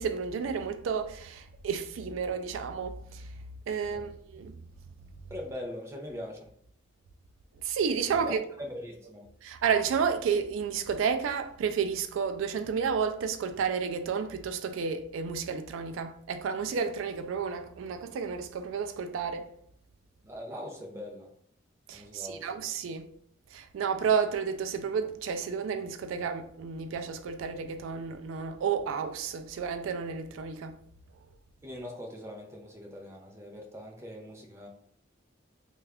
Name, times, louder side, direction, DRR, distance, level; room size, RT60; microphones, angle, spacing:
voice 1, 0.0-3.3 3.7-4.6 7.6-8.4 9.4-19.5 21.9-23.1 23.5-30.8, right 6 dB, 80° right, 0.3 m, -31 dB
voice 2, 5.3-6.5 8.1-9.3 20.2-21.3 21.9-22.5 31.6-34.7, left 1 dB, 15° right, 0.5 m, -41 dB
3.2 x 2.4 x 3.4 m
head